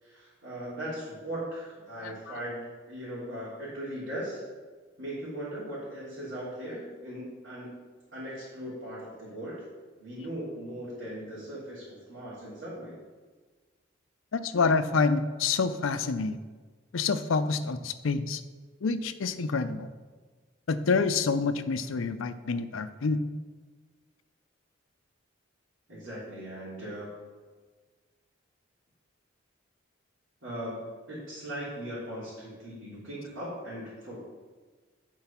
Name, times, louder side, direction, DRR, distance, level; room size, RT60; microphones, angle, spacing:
voice 1, 0.0-4.4 5.0-7.8 8.1-9.6 10.0-13.0 25.9-27.2 30.4-34.2, right 1 dB, 75° right, -10 dB, 3.0 m, -39 dB
voice 2, 14.3-16.4 16.9-18.4 18.8-19.9 20.7-23.2, left 4 dB, 90° left, 10 dB, 0.5 m, -27 dB
9.7 x 4.6 x 5.8 m, 1.4 s
head